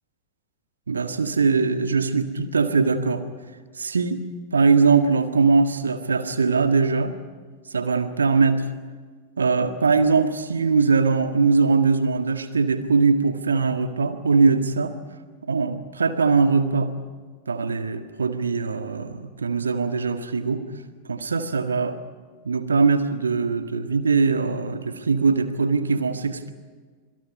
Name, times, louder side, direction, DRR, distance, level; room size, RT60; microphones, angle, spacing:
voice 1, 0.9-3.2 3.8-4.2 4.5-7.1 7.7-8.6 9.4-15.0 15.5-16.9 17.5-20.6 21.1-22.0 22.4-26.5, right 4 dB, 75° right, 8 dB, 1.8 m, -21 dB
27.0 x 25.5 x 5.4 m, 1.5 s
figure-of-eight pair, 90°, 0 cm